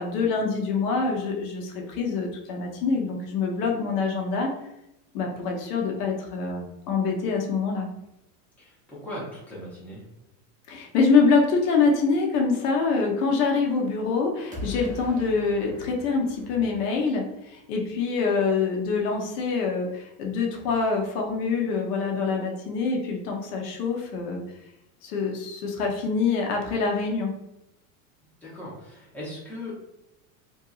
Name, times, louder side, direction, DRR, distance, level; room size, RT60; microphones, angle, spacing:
voice 1, 0.0-4.5 5.1-7.9 10.7-24.4 25.0-27.3, left 4 dB, 80° left, 0 dB, 0.9 m, -25 dB
voice 2, 8.6-10.0 28.4-29.8, left 1 dB, 5° left, -7 dB, 0.9 m, -38 dB
sound 1, 14.5-17.4, left 1 dB, 20° right, 0.5 m, -40 dB
2.7 x 2.6 x 2.4 m, 0.89 s
supercardioid pair, 140°, 45 cm